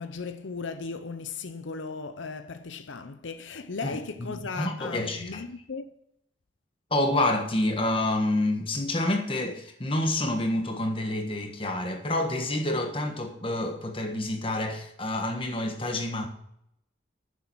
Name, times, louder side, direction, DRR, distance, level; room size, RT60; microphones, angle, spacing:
voice 1, 0.0-5.9, left 4 dB, 80° left, 0.7 m, -37 dB
voice 2, 3.8-5.4 6.9-16.3, left 1 dB, 25° left, 1.3 m, -28 dB
10.0 x 7.1 x 6.1 m
head